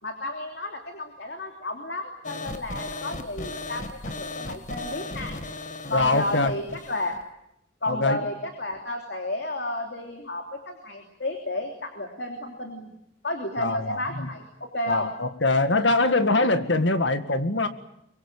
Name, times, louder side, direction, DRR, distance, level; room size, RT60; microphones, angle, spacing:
voice 1, 0.0-5.3 5.9-7.2 7.8-12.9 13.2-15.1, left 1 dB, 60° left, 4 dB, 3.1 m, -32 dB
sound 1, 2.2-7.2, left 2 dB, 40° left, 1.7 m, -36 dB
voice 2, 5.9-6.5 7.9-8.2 13.6-14.3 14.9-17.7, left 2 dB, 75° left, 9 dB, 1.9 m, -23 dB
24.0 x 23.5 x 8.8 m, 0.79 s
head